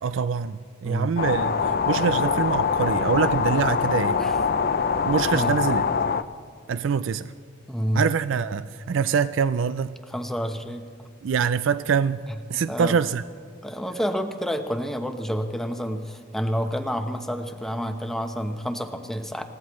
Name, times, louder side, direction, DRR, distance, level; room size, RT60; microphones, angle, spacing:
voice 1, 0.0-4.2 5.0-5.9 6.7-7.3 7.9-10.0 11.2-13.2, right 6 dB, 70° right, 0.4 m, -25 dB
sound 1, 1.2-6.2, left 5 dB, 50° left, 0.5 m, -23 dB
voice 2, 7.7-8.0 10.1-10.8 12.7-13.0 13.6-19.4, equal, ahead, 0.9 m, -29 dB
28.5 x 16.0 x 3.1 m
head